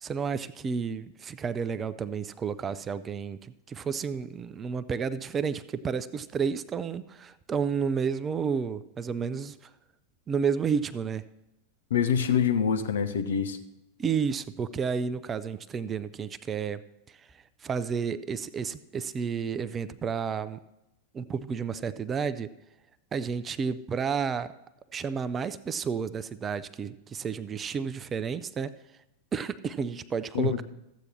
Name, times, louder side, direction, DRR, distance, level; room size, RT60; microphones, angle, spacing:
voice 1, 0.0-9.7 10.3-11.2 14.0-16.8 17.1-20.6 21.1-22.5 23.1-24.5 24.9-28.7 29.3-30.6, right 6 dB, 20° right, 15 dB, 0.5 m, -31 dB
voice 2, 11.9-13.6 30.3-30.6, left 7 dB, 65° left, 8 dB, 0.9 m, -25 dB
14.0 x 8.3 x 4.3 m, 0.91 s
figure-of-eight pair, 90°, 0 cm